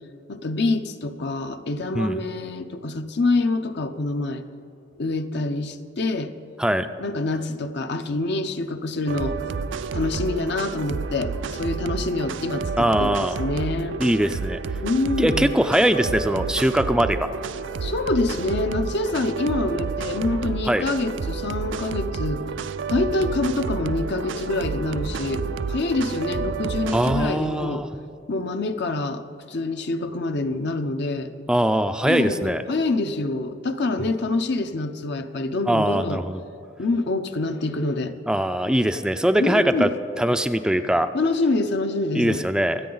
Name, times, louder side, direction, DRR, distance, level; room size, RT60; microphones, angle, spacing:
voice 1, 0.3-4.4 5.0-6.3 7.0-9.4 9.9-14.0 14.8-15.5 17.8-22.4 22.9-25.4 25.7-27.9 28.3-29.2 29.5-31.3 32.0-36.2 36.8-38.1 39.4-39.9 41.1-42.5, left 2 dB, 65° left, 8 dB, 0.7 m, -26 dB
sound 1, 9.1-27.3, right 5 dB, 90° right, 0.4 m, -30 dB
voice 2, 12.8-13.4 14.0-14.6 15.2-17.3 20.7-20.9 26.9-27.9 31.5-32.6 35.7-36.4 38.3-39.9 40.2-41.1 42.1-42.8, right 1 dB, 5° right, 9 dB, 0.3 m, -21 dB
24.5 x 8.5 x 3.9 m, 2.9 s
head